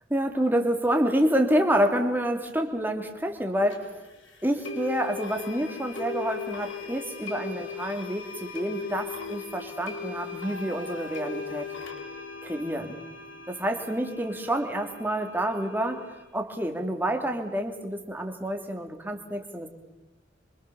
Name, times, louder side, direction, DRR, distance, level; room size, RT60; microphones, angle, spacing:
voice 1, 0.1-3.9 4.4-11.7 12.4-13.0 13.5-16.0 16.3-19.7, equal, 10° right, 4 dB, 3.0 m, -28 dB
sound 1, 3.7-3.8 4.6-16.2, left 4 dB, 90° left, 5.2 m, -38 dB
27.5 x 25.0 x 7.1 m, 1.1 s
head